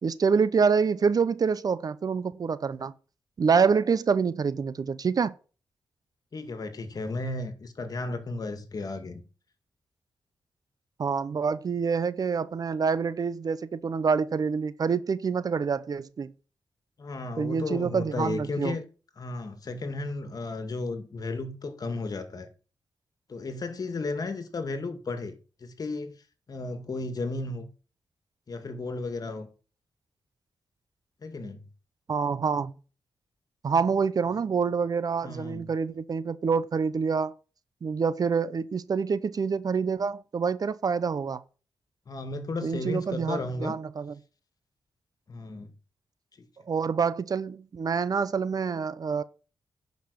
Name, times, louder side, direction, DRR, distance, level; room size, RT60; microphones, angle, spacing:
voice 1, 0.0-2.9 3.4-5.3 11.0-16.3 17.4-18.8 32.1-32.7 33.6-37.3 37.8-41.4 42.6-44.1 46.7-49.2, right 5 dB, 55° right, 0.7 m, -26 dB
voice 2, 6.3-9.2 17.0-18.9 19.2-22.5 23.3-26.2 26.5-27.7 28.5-29.5 31.2-31.7 35.2-35.7 42.1-43.7 45.3-45.7, left 3 dB, 55° left, 2.0 m, -34 dB
10.5 x 5.4 x 6.4 m
cardioid pair, 65°, 8 cm